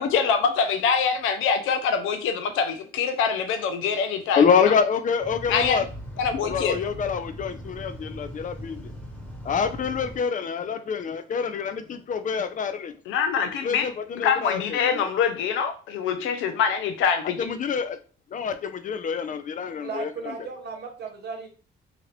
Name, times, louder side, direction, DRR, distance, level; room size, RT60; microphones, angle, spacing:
voice 1, 0.0-4.7 5.5-5.8 6.2-6.8 13.1-13.9 14.2-17.4, left 6 dB, 85° left, 7 dB, 0.6 m, -24 dB
voice 2, 4.4-5.8 6.4-8.9 9.5-13.0 13.6-15.1 17.4-18.0 18.3-20.5, left 6 dB, 40° left, 10 dB, 0.5 m, -26 dB
sound 1, 5.2-10.2, equal, 5° left, 1.2 m, -39 dB
voice 3, 19.8-21.5, right 4 dB, 60° right, 2 dB, 1.0 m, -35 dB
2.9 x 2.4 x 3.1 m, 0.37 s
cardioid pair, 90°, 20 cm